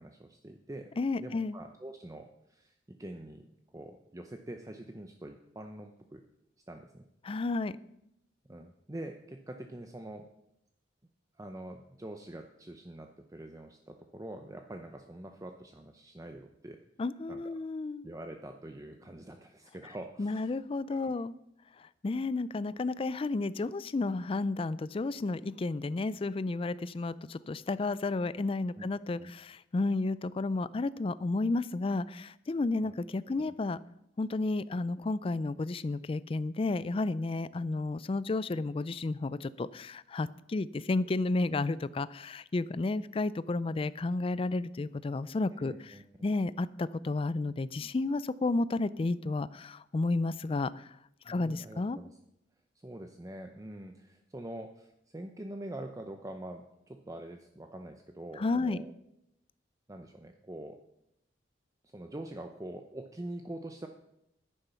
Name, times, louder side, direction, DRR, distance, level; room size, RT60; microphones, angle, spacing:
voice 1, 0.0-3.5 3.7-6.2 6.7-7.1 8.4-10.3 11.4-16.8 17.3-17.5 18.0-20.5 20.9-21.1 28.8-28.9 29.2-29.3 32.8-32.9 45.6-46.3 51.2-52.1 52.8-58.9 59.9-60.8 61.8-63.9, right 1 dB, 20° right, 5 dB, 0.6 m, -45 dB
voice 2, 1.0-1.6 7.2-7.8 17.0-18.0 20.2-21.3 22.0-33.8 34.2-45.9 46.2-50.9 51.3-52.0 58.4-58.8, left 3 dB, 30° left, 17 dB, 0.4 m, -32 dB
10.0 x 9.9 x 5.7 m, 0.79 s
head